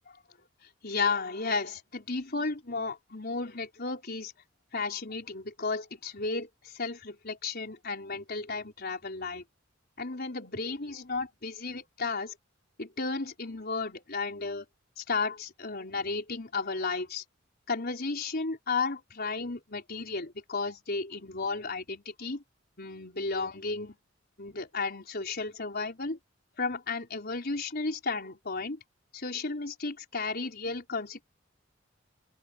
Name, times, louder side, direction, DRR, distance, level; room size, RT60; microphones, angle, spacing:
voice 1, 0.6-4.3 4.7-9.4 10.0-12.4 12.8-14.7 15.0-17.2 17.7-22.4 22.8-24.0 24.4-26.2 26.6-28.8 29.1-31.2, left 4 dB, 50° left, 4.4 m, -33 dB
open air
head